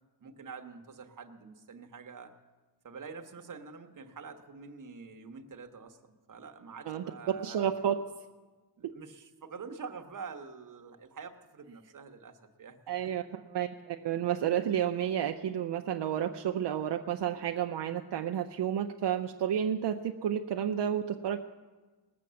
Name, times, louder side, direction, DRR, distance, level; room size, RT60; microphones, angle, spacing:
voice 1, 0.2-2.3 2.8-7.6 8.8-13.3, right 5 dB, 45° right, 5 dB, 1.1 m, -46 dB
voice 2, 7.4-7.9 12.9-21.4, right 9 dB, 75° right, 6 dB, 0.6 m, -31 dB
19.0 x 6.8 x 7.4 m, 1.3 s
wide cardioid pair, 150°, 42 cm